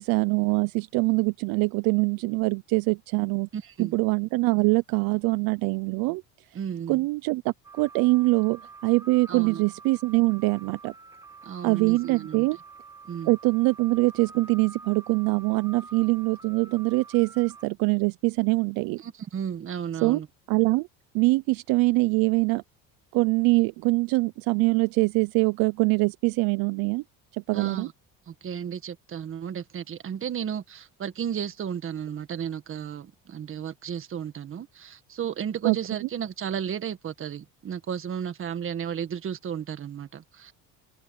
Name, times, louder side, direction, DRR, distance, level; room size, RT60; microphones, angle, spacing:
voice 1, 0.0-3.5 3.8-6.2 6.9-10.9 11.6-12.6 13.3-19.0 20.0-20.2 20.5-20.9 21.1-22.6 23.1-27.0 27.3-27.9 35.6-35.8, right 25 dB, 70° right, 0.6 m, -23 dB
voice 2, 3.5-3.9 6.5-7.0 9.3-9.6 11.4-12.5 13.1-13.3 19.0-20.3 27.5-27.9 28.3-40.5, right 8 dB, 35° right, 1.7 m, -33 dB
sound 1, 7.6-17.7, right 4 dB, 10° right, 1.6 m, -47 dB
open air
cardioid pair, 135°, 37 cm